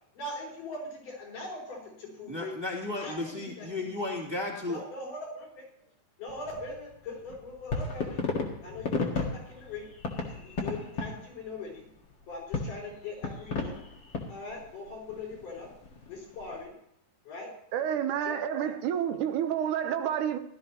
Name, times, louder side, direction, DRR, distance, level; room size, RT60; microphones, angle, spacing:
voice 1, 0.1-2.6 3.0-3.9 4.7-5.9 6.2-8.2 8.6-11.9 12.3-13.8 14.3-15.7 16.1-16.7 17.2-17.6 18.2-18.7, left 2 dB, 90° left, 6.7 m, -41 dB
voice 2, 2.3-4.8, left 2 dB, 10° right, 2.4 m, -34 dB
sound 1, 6.3-16.6, left 3 dB, 45° left, 2.1 m, -35 dB
voice 3, 17.7-20.4, right 9 dB, 85° right, 2.4 m, -29 dB
17.0 x 13.0 x 2.9 m
omnidirectional pair, 3.6 m